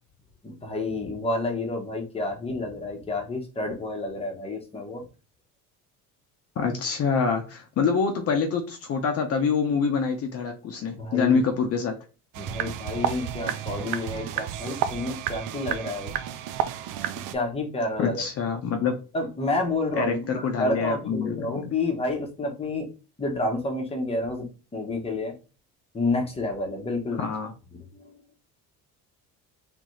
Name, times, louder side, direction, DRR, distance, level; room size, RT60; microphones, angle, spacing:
voice 1, 0.4-5.0 10.9-11.4 12.4-16.1 17.3-18.2 19.1-22.9 23.2-24.5 24.7-25.3 25.9-27.3 27.7-28.1, left 2 dB, 15° left, 2 dB, 1.0 m, -29 dB
voice 2, 6.6-12.0 18.0-19.0 20.0-21.6 27.2-27.5, left 5 dB, 45° left, 4 dB, 0.8 m, -26 dB
sound 1, 12.3-17.4, right 10 dB, 65° right, 0.6 m, -31 dB
3.9 x 3.4 x 3.1 m, 0.33 s
cardioid pair, 150°, 34 cm